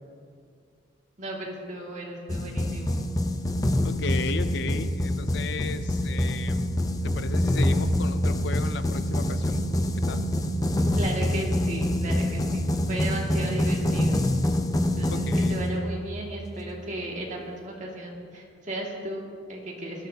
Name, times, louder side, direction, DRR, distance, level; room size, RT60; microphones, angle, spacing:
voice 1, 1.2-3.1 10.9-14.2 15.0-20.1, right 1 dB, 40° right, -2 dB, 2.4 m, -35 dB
sound 1, 2.3-16.2, left 1 dB, 20° left, 0.7 m, -26 dB
voice 2, 3.8-6.7 7.0-9.6 10.0-10.2 15.1-15.6, left 4 dB, 65° left, 11 dB, 0.6 m, -34 dB
19.5 x 13.5 x 2.9 m, 2.3 s
head